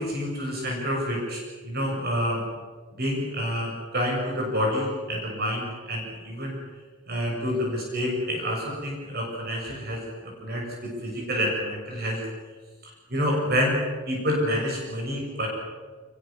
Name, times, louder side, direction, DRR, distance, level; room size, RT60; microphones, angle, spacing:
voice 1, 0.0-2.4 3.0-6.6 7.1-10.0 10.4-10.7 11.0-12.2 13.1-13.8 14.1-15.5, equal, 45° right, -1 dB, 7.1 m, -28 dB
25.0 x 22.5 x 7.3 m, 1.4 s
head